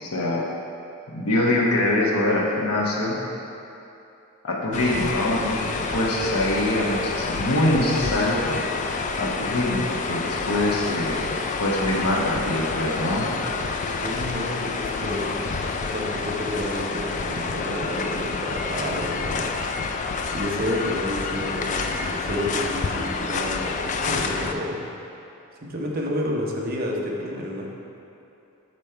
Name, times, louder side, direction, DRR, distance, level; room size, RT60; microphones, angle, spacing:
voice 1, 0.0-0.4 1.1-3.2 4.4-8.7 9.2-11.2 11.6-13.3, left 1 dB, 75° left, -3 dB, 1.1 m, -24 dB
sound 1, 4.7-24.5, left 4 dB, 35° left, 0.3 m, -28 dB
voice 2, 14.0-19.6 20.3-24.8 25.6-27.7, equal, 40° right, -1 dB, 0.8 m, -30 dB
6.2 x 5.3 x 4.4 m, 2.8 s
head